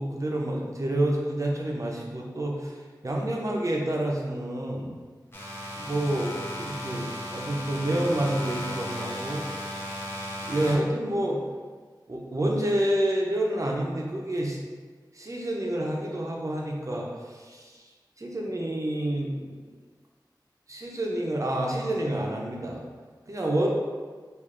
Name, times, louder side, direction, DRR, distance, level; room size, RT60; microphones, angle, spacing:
voice 1, 0.0-2.7 3.0-4.9 5.8-9.4 10.4-11.4 12.1-14.6 15.1-17.8 18.2-19.6 20.7-22.8 23.3-23.7, right 1 dB, 45° right, -2 dB, 0.6 m, -28 dB
sound 1, 5.3-10.8, left 1 dB, 30° left, 0.7 m, -35 dB
3.2 x 2.4 x 3.7 m, 1.5 s
wide cardioid pair, 65°, 8 cm